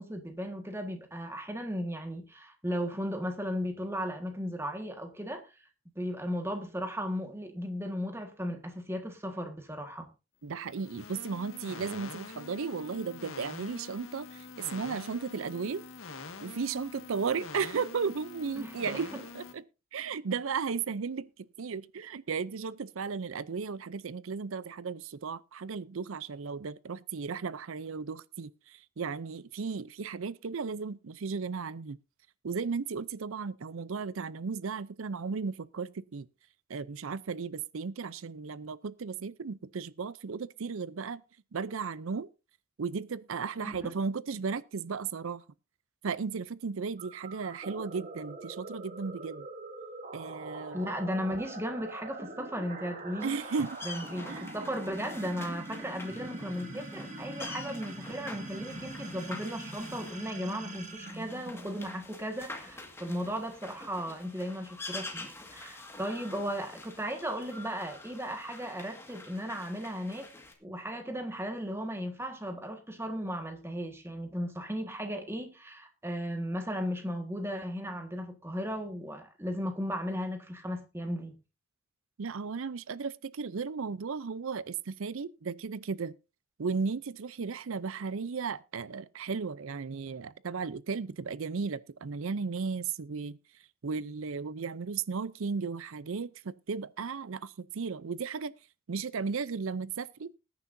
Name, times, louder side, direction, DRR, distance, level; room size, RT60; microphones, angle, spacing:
voice 1, 0.0-5.5 6.0-10.1 18.6-19.2 43.6-43.9 50.7-53.4 53.8-70.3 70.6-81.4, equal, 10° right, 1.6 m, -36 dB
voice 2, 10.4-15.8 16.4-19.6 19.9-21.3 21.6-32.0 32.4-36.3 36.7-41.2 41.5-42.3 42.8-45.4 46.0-49.5 50.1-50.9 53.2-53.8 54.3-54.5 82.2-86.1 86.6-93.4 93.8-98.5 98.9-100.3, right 5 dB, 70° right, 0.5 m, -35 dB
sound 1, 10.6-19.5, left 4 dB, 70° left, 1.7 m, -45 dB
sound 2, 47.0-62.1, right 2 dB, 35° right, 1.8 m, -43 dB
sound 3, 53.2-70.5, left 2 dB, 10° left, 1.8 m, -47 dB
20.5 x 9.7 x 2.7 m
head